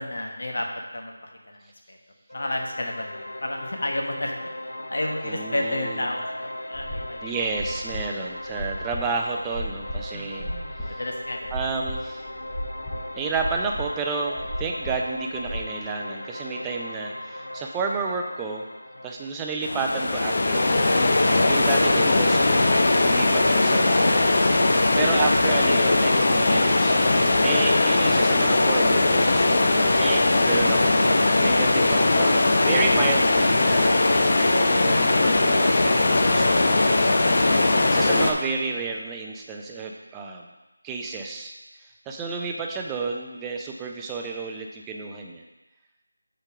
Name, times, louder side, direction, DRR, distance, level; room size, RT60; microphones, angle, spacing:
voice 1, 0.0-2.0 2.3-4.3 4.9-7.3 10.1-11.5, left 1 dB, 70° left, 1 dB, 1.1 m, -32 dB
sound 1, 2.3-19.3, left 1 dB, 85° left, 0.8 m, -38 dB
voice 2, 5.2-6.1 7.2-10.5 10.8-11.0 11.5-12.2 13.2-18.6 19.0-20.8 21.5-24.3 24.7-31.0 31.4-36.7 37.4-40.5 40.8-41.5 42.1-45.4, right 4 dB, 10° right, 1 dB, 0.4 m, -31 dB
sound 2, 6.7-10.9 11.2-15.6, equal, 10° left, 1.0 m, -35 dB
sound 3, 19.6-38.3, left 2 dB, 50° left, 0.7 m, -20 dB
5.1 x 4.5 x 5.9 m, 1.1 s
figure-of-eight pair, 170°, 0 cm